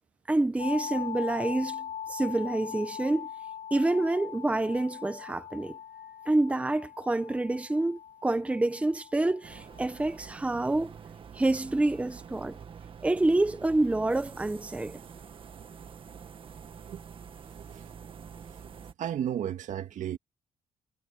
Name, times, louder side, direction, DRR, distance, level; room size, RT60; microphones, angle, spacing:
voice 1, 0.3-3.3 3.7-5.8 6.3-10.9 11.3-12.6 13.0-15.0, right 2 dB, 10° right, 1.0 m, -27 dB
sound 1, 0.6-10.4, left 9 dB, 85° left, 2.2 m, -41 dB
sound 2, 9.4-18.9, right 7 dB, 40° right, 1.7 m, -46 dB
voice 2, 19.0-20.2, right 10 dB, 70° right, 2.1 m, -33 dB
cardioid pair, 145°, 13 cm